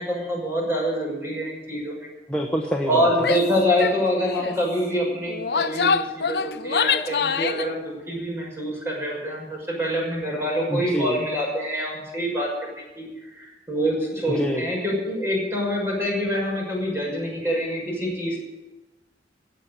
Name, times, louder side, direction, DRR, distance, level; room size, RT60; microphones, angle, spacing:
voice 1, 0.0-2.1 2.9-12.5 12.8-13.0 13.3-18.4, equal, 15° right, -2 dB, 6.4 m, -26 dB
voice 2, 2.3-3.3 10.7-11.2 14.3-14.6, equal, 5° left, 0 dB, 1.0 m, -26 dB
Female speech woman speaking / Yell, 3.2-3.5 3.8-4.0 4.3-4.6 5.3-7.7, left 6 dB, 65° left, 0.7 m, -25 dB
17.5 x 7.6 x 9.9 m, 1.1 s
head